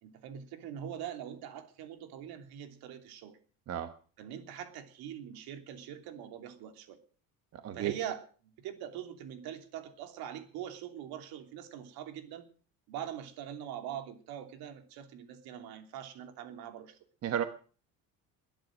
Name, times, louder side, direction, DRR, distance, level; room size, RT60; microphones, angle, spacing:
voice 1, 0.0-3.4 4.2-7.0 7.7-8.2 8.6-12.5 12.9-17.0, right 10 dB, 70° right, 6 dB, 3.2 m, -43 dB
voice 2, 7.5-7.9 17.2-17.4, right 10 dB, 40° right, 9 dB, 1.2 m, -33 dB
21.0 x 10.5 x 6.4 m, 0.41 s
cardioid pair, 155°, 38 cm